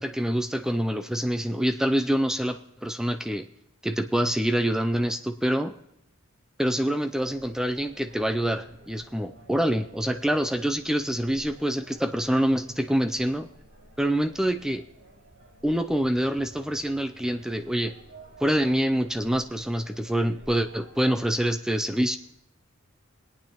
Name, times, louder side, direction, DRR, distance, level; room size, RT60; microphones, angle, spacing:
voice 1, 0.0-3.5 3.8-5.7 6.6-13.5 14.0-14.9 15.6-17.9 18.4-22.2, equal, 5° right, 8 dB, 0.3 m, -26 dB
sound 1, 7.1-21.4, right 2 dB, 85° right, 5.4 m, -52 dB
21.5 x 9.0 x 2.9 m, 0.80 s
head